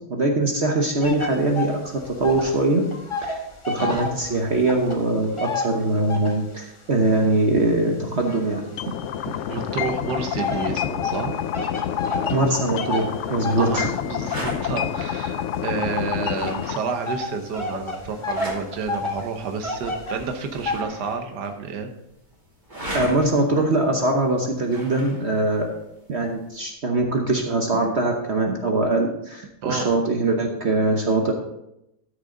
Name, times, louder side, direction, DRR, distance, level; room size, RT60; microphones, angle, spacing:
voice 1, 0.1-1.8 2.1-2.8 3.2-3.4 3.7-8.9 12.2-13.9 22.9-25.7 26.1-31.3, right 2 dB, 45° right, 2 dB, 1.2 m, -22 dB
sound 1, 1.0-2.6 2.8-6.5 7.1-9.2 9.8-20.8, left 2 dB, 20° left, 1.0 m, -31 dB
sound 2, 8.8-16.8, left 9 dB, 75° left, 0.6 m, -28 dB
voice 2, 9.5-11.3 13.6-21.9 29.6-29.9, right 5 dB, 80° right, 5 dB, 1.6 m, -30 dB
Bag rustle, 12.9-26.7, equal, 25° right, 3.1 m, -40 dB
13.5 x 6.5 x 3.8 m, 0.83 s
omnidirectional pair, 1.8 m